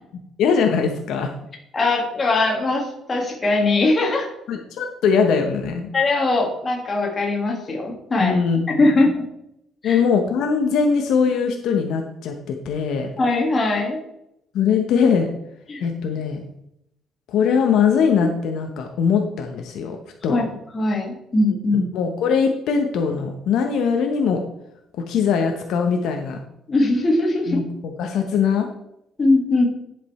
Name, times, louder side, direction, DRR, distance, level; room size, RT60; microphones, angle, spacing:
voice 1, 0.4-1.3 4.5-5.9 8.2-8.8 9.8-13.1 14.5-15.3 15.8-16.4 17.3-20.0 20.2-20.4 21.9-24.4 25.1-26.4 27.5-28.7, left 6 dB, 60° left, 4 dB, 0.9 m, -21 dB
voice 2, 1.7-4.3 5.9-8.4 8.7-9.2 9.8-10.0 13.2-14.0 15.7-15.8 20.3-21.9 26.7-27.6 29.2-29.7, left 2 dB, 20° left, 0 dB, 1.7 m, -20 dB
10.5 x 5.2 x 4.2 m, 0.80 s
cardioid pair, 175°, 0 cm